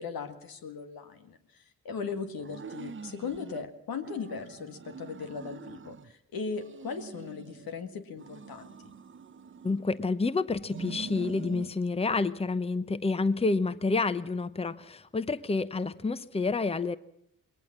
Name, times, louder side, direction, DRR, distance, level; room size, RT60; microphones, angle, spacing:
voice 1, 0.0-8.9, left 5 dB, 80° left, 8 dB, 2.0 m, -38 dB
sound 1, 2.4-3.6 4.0-6.1 6.5-7.7 8.2-10.1 10.6-11.8, right 6 dB, 35° right, 0.7 m, -45 dB
voice 2, 9.6-17.0, left 3 dB, 15° left, 15 dB, 0.8 m, -29 dB
20.5 x 18.5 x 7.3 m, 0.73 s
supercardioid pair, 55°, 35 cm